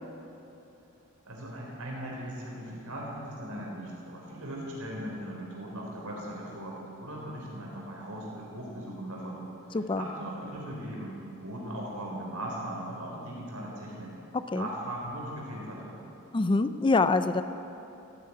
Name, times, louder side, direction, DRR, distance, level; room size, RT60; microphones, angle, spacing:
voice 1, 1.2-14.1 14.5-16.0, right 1 dB, 85° right, -2 dB, 4.1 m, -39 dB
voice 2, 16.3-17.4, left 3 dB, 20° left, 11 dB, 0.4 m, -25 dB
15.0 x 9.5 x 8.6 m, 3.0 s
head